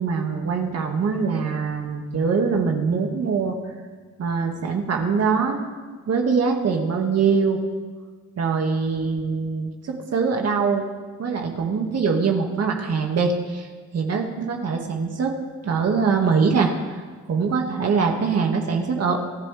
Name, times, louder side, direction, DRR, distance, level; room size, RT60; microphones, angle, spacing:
voice 1, 0.0-3.6 4.2-7.6 8.4-10.9 11.2-15.3 15.6-16.7 17.3-19.2, right 5 dB, 55° right, 2 dB, 2.2 m, -23 dB
26.5 x 11.5 x 3.5 m, 1.5 s
cardioid pair, 90°, 30 cm